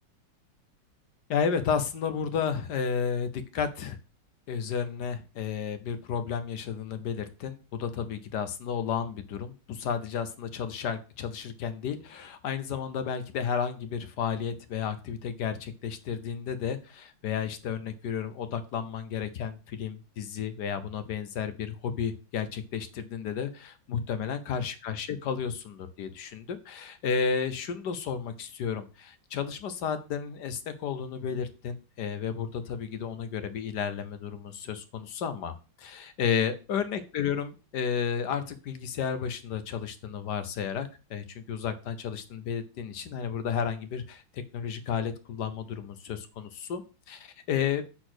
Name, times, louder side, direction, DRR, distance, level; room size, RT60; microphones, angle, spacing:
voice 1, 1.3-4.0 4.5-35.5 35.8-46.8 47.1-47.8, left 7 dB, 60° left, 10 dB, 1.3 m, -32 dB
7.9 x 4.2 x 6.2 m, 0.33 s
omnidirectional pair, 2.3 m